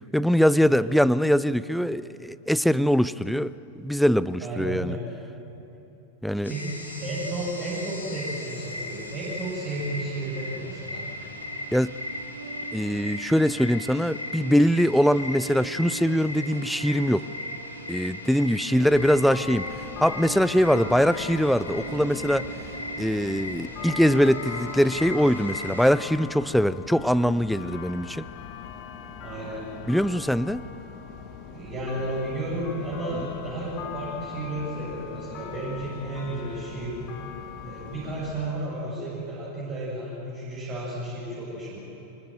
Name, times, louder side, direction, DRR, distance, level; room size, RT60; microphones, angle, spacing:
voice 1, 0.1-3.5 3.8-5.0 6.2-6.5 11.7-11.9 12.7-17.2 17.9-19.7 20.0-22.5 23.0-28.3 29.9-30.6, equal, ahead, 17 dB, 0.5 m, -22 dB
voice 2, 4.4-5.0 6.5-11.1 29.2-29.7 31.5-37.0 37.6-41.8, right 1 dB, 35° right, -6 dB, 7.2 m, -33 dB
sound 1, 6.4-25.9, left 1 dB, 75° left, 3.2 m, -38 dB
Piano, 11.2-23.7, right 5 dB, 85° right, 4.0 m, -43 dB
sound 2, 18.9-38.5, left 7 dB, 40° left, 2.4 m, -40 dB
25.0 x 23.5 x 7.7 m, 3.0 s
figure-of-eight pair, 90°, 0 cm